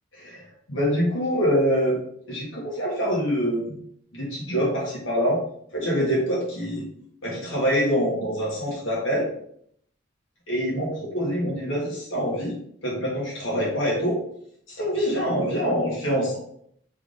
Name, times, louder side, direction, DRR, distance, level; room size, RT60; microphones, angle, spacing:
voice 1, 0.1-2.0 2.3-3.8 4.1-5.4 5.7-6.8 7.2-9.3 10.5-12.6 12.8-14.2 14.7-16.4, equal, 90° left, -5 dB, 1.2 m, -25 dB
3.4 x 3.4 x 2.4 m, 0.67 s
head